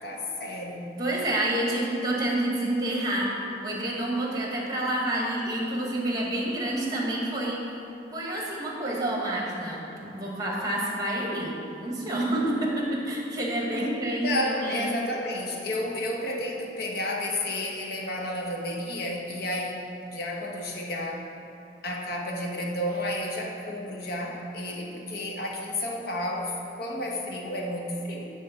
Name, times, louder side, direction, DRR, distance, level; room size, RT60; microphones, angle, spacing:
voice 1, 0.0-0.9 13.7-19.8 20.1-21.2 21.8-28.3, left 1 dB, 60° left, 0 dB, 1.0 m, -31 dB
voice 2, 1.0-3.3 3.6-7.6 8.1-14.9, right 1 dB, 20° right, -3 dB, 1.3 m, -28 dB
9.6 x 3.4 x 5.6 m, 2.7 s
head